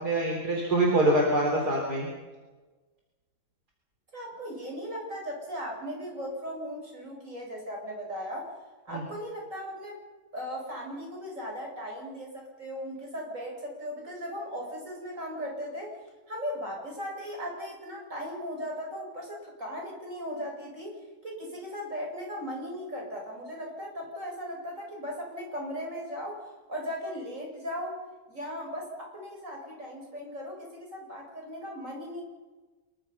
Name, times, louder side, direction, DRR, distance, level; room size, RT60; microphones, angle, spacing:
voice 1, 0.0-2.1 8.9-9.0, right 1 dB, 65° right, 0 dB, 4.5 m, -25 dB
voice 2, 4.1-8.5 8.8-10.0 10.3-16.0 16.3-28.0 28.3-32.2, equal, 45° right, -1 dB, 8.0 m, -37 dB
27.0 x 23.0 x 5.8 m, 1.3 s
omnidirectional pair, 1.9 m